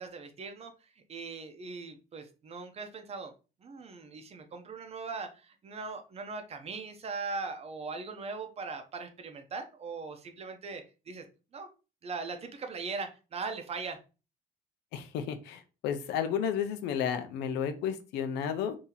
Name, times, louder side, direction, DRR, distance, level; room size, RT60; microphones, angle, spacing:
voice 1, 0.0-3.3 3.6-11.2 11.5-11.7 12.0-14.0, right 4 dB, 40° right, 6 dB, 0.7 m, -40 dB
voice 2, 14.9-18.8, left 8 dB, 90° left, 9 dB, 0.6 m, -32 dB
2.9 x 2.7 x 3.8 m, 0.32 s
cardioid pair, 110°, 17 cm